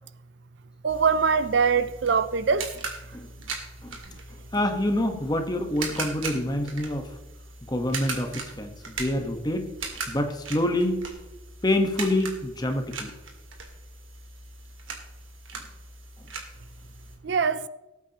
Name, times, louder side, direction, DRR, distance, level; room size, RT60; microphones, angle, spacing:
voice 1, 0.8-2.7 17.2-17.6, right 5 dB, 60° right, 0.4 m, -22 dB
sound 1, 0.9-17.2, right 4 dB, 80° right, 2.1 m, -39 dB
voice 2, 4.5-7.1 7.7-9.7 10.1-11.1 11.6-13.1, left 1 dB, 20° left, 1.1 m, -26 dB
18.5 x 8.4 x 2.9 m
head